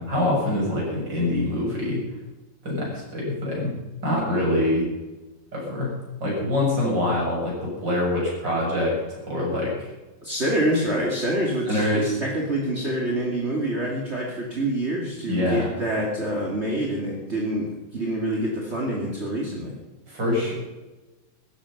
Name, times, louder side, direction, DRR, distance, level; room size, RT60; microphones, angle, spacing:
voice 1, 0.0-2.0 2.6-3.7 4.0-4.9 5.5-5.9 6.2-9.9 11.7-12.1 15.3-15.7 20.1-20.5, left 1 dB, 80° right, -3 dB, 8.2 m, -25 dB
voice 2, 10.2-19.7, right 1 dB, 35° right, -2 dB, 2.7 m, -26 dB
16.0 x 13.5 x 5.9 m, 1.1 s
omnidirectional pair, 1.9 m